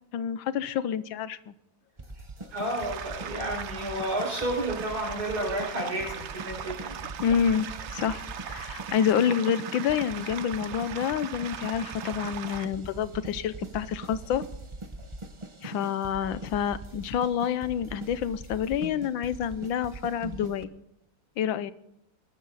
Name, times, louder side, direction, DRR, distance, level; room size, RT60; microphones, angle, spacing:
voice 1, 0.1-1.5 7.2-14.4 15.6-20.7 21.4-21.7, left 8 dB, 80° left, 15 dB, 1.5 m, -28 dB
sound 1, 2.0-20.7, right 2 dB, 25° right, 0.7 m, -42 dB
voice 2, 2.5-7.1, right 1 dB, 50° right, 1 dB, 5.9 m, -31 dB
sound 2, 2.5-12.7, right 8 dB, 65° right, 0.6 m, -39 dB
22.0 x 13.0 x 4.1 m, 0.81 s
omnidirectional pair, 2.1 m